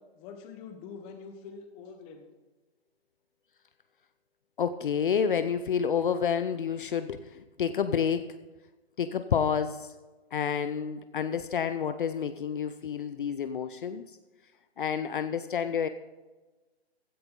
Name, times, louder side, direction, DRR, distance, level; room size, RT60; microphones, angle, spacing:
voice 1, 0.0-2.3, left 5 dB, 15° left, 6 dB, 1.1 m, -45 dB
voice 2, 4.6-8.4 9.0-9.9 10.3-14.0 14.8-15.9, left 7 dB, 50° left, 11 dB, 0.7 m, -29 dB
15.5 x 10.5 x 3.8 m, 1.2 s
hypercardioid pair, 155°, 33 cm